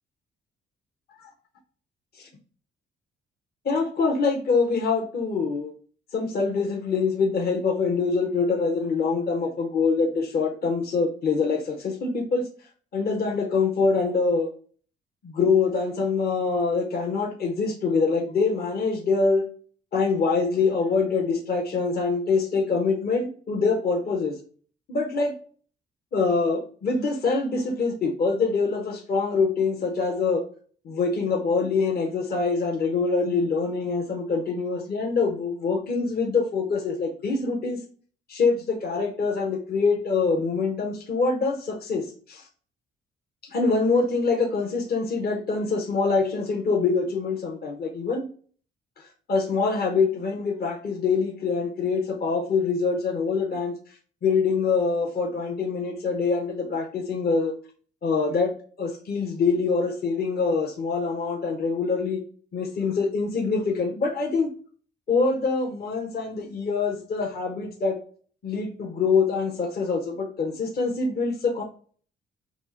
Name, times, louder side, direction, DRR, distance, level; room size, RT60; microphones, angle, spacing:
voice 1, 3.6-5.7 6.1-12.4 12.9-14.5 15.2-19.5 19.9-24.4 24.9-25.3 26.1-30.4 30.8-37.8 38.3-42.4 43.5-48.3 49.3-53.8 54.2-57.5 58.0-62.2 62.5-64.5 65.1-67.9 68.4-71.6, left 4 dB, 50° left, 1 dB, 1.0 m, -24 dB
4.3 x 2.5 x 4.2 m, 0.44 s
cardioid pair, 90°, 20 cm